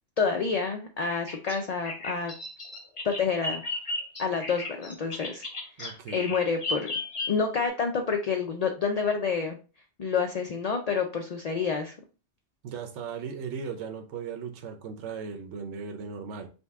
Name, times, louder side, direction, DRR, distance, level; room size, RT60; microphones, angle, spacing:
voice 1, 0.2-2.3 3.0-3.6 4.2-5.4 5.8-6.9 7.3-9.6 10.0-11.9, left 5 dB, 55° left, 4 dB, 0.4 m, -28 dB
Bird vocalization bird call bird song, 1.1-7.7, left 2 dB, 30° left, 0.7 m, -35 dB
voice 2, 5.8-6.3 12.6-16.5, right 6 dB, 80° right, 5 dB, 1.0 m, -37 dB
5.2 x 2.2 x 3.4 m, 0.34 s
omnidirectional pair, 1.2 m